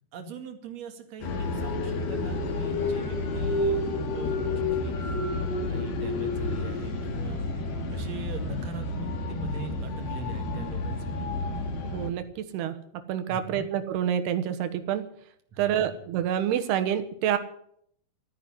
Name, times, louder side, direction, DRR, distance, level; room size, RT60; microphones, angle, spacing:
voice 1, 0.1-4.9 5.3-7.4 7.9-11.3 13.3-13.6 15.5-15.9, right 3 dB, 50° right, 5 dB, 2.9 m, -41 dB
sound 1, 1.2-12.1, left 2 dB, 70° left, 4.1 m, -30 dB
voice 2, 11.8-12.8 13.1-15.0 15.6-17.4, right 10 dB, 85° right, 9 dB, 3.3 m, -27 dB
14.5 x 9.7 x 9.6 m, 0.65 s
omnidirectional pair, 4.6 m